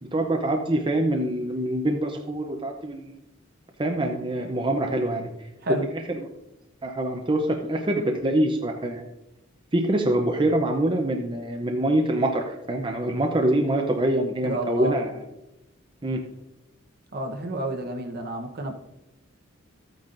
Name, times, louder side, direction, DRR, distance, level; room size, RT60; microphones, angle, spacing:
voice 1, 0.0-3.1 3.8-5.3 6.1-6.2 6.8-9.0 9.7-15.1 16.0-16.2, right 1 dB, 25° right, 2 dB, 0.7 m, -25 dB
voice 2, 14.4-15.0 17.1-18.7, right 1 dB, 50° right, 4 dB, 1.0 m, -30 dB
13.0 x 9.2 x 2.6 m, 0.92 s
head